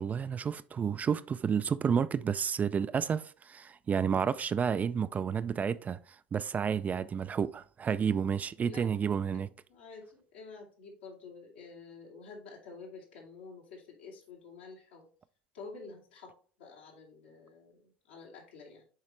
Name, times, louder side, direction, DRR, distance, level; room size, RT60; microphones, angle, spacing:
voice 1, 0.0-6.0 6.3-9.5, right 7 dB, 30° right, 0.4 m, -30 dB
voice 2, 9.7-15.1 15.5-18.9, left 4 dB, 80° left, 2.5 m, -49 dB
7.4 x 4.8 x 3.2 m
hypercardioid pair, 80°, 5 cm